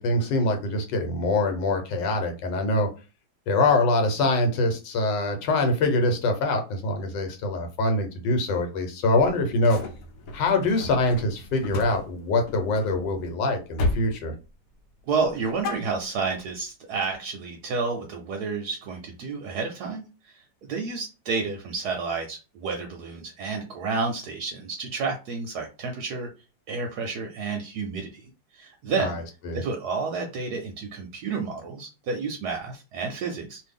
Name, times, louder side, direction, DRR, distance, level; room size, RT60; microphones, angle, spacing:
voice 1, 0.0-2.9 3.5-9.8 10.3-14.3 29.0-29.1 29.4-29.6, left 2 dB, 85° left, 4 dB, 1.5 m, -24 dB
sound 1, 9.1-13.3 13.8-14.1 14.4-14.9 15.2-16.5, left 2 dB, 65° left, 1.0 m, -34 dB
voice 2, 15.0-26.3 26.7-29.2 29.5-33.6, right 4 dB, 75° right, 3 dB, 1.1 m, -30 dB
2.7 x 2.6 x 3.5 m, 0.31 s
omnidirectional pair, 1.9 m